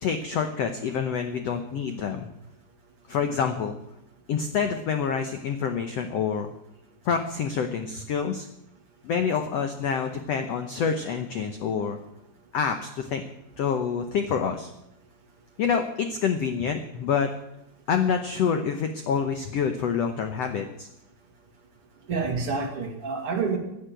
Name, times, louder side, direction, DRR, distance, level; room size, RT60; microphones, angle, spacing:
voice 1, 0.0-2.3 3.1-3.8 4.3-6.5 7.0-8.5 9.0-12.0 12.5-13.2 13.6-14.7 15.6-17.3 17.9-20.9, left 6 dB, 85° left, 7 dB, 1.4 m, -27 dB
voice 2, 22.1-23.6, right 4 dB, 45° right, 2 dB, 2.7 m, -28 dB
16.0 x 8.8 x 9.0 m, 0.84 s
omnidirectional pair, 4.4 m